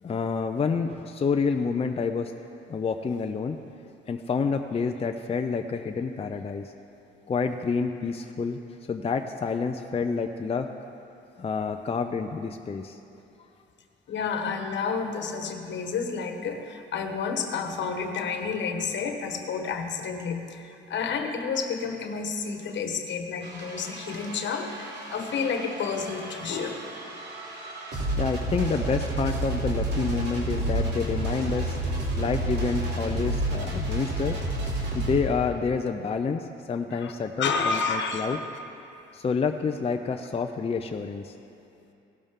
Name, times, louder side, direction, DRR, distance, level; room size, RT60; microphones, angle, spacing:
voice 1, 0.0-2.3 2.7-3.6 4.1-6.7 7.3-8.6 8.9-10.7 11.4-13.0 28.2-31.8 32.2-34.4 34.9-38.4 39.1-41.3, left 5 dB, 30° left, 5 dB, 0.6 m, -28 dB
voice 2, 14.1-26.8 36.9-37.1 37.4-38.4, left 5 dB, 65° left, 5 dB, 1.3 m, -30 dB
sound 1, 23.4-35.2, right 1 dB, 60° right, 2.8 m, -30 dB
17.5 x 12.0 x 3.7 m, 2.7 s
cardioid pair, 90°, 20 cm